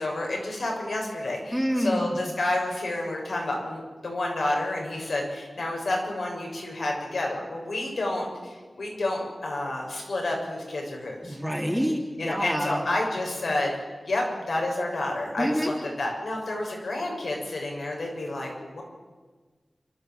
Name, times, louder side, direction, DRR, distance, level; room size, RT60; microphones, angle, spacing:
voice 1, 0.0-11.4 12.2-13.7 14.1-18.8, left 2 dB, 75° left, 0 dB, 6.8 m, -30 dB
voice 2, 1.5-2.1 11.2-12.8 15.4-15.7, equal, ahead, -1 dB, 2.9 m, -27 dB
29.5 x 13.5 x 7.9 m, 1.4 s
wide cardioid pair, 90°, 0 cm